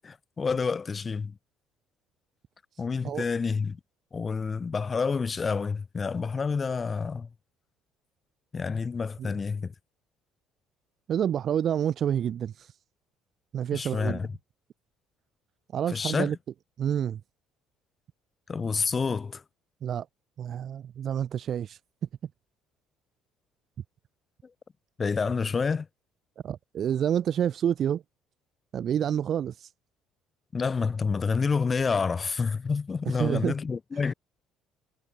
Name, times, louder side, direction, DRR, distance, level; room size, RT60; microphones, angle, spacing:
voice 1, 0.0-1.3 2.8-3.8 4.1-7.3 8.5-9.7 13.7-14.3 15.9-16.3 18.5-19.4 25.0-25.9 30.5-34.1, left 5 dB, 30° left, 1.5 m, -28 dB
voice 2, 11.1-12.8 13.5-14.2 15.7-16.4 16.8-17.2 19.8-20.1 20.4-21.8 26.4-28.0 28.7-29.7 33.0-33.5 34.0-34.1, right 9 dB, 50° right, 1.0 m, -28 dB
figure-of-eight pair, 50°, 0 cm